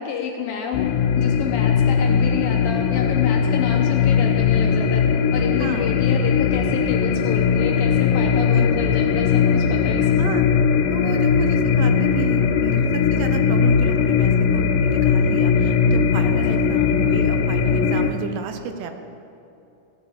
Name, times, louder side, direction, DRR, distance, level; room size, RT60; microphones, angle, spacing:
voice 1, 0.0-5.0 5.3-10.1 16.2-16.6, left 7 dB, 75° left, 1 dB, 2.2 m, -29 dB
sound 1, 0.7-18.1, left 6 dB, 90° left, 3.0 m, -19 dB
voice 2, 5.6-6.0 8.5-8.7 10.2-10.5 10.9-19.0, right 7 dB, 80° right, 7 dB, 2.9 m, -31 dB
16.0 x 7.3 x 8.4 m, 2.7 s
omnidirectional pair, 4.9 m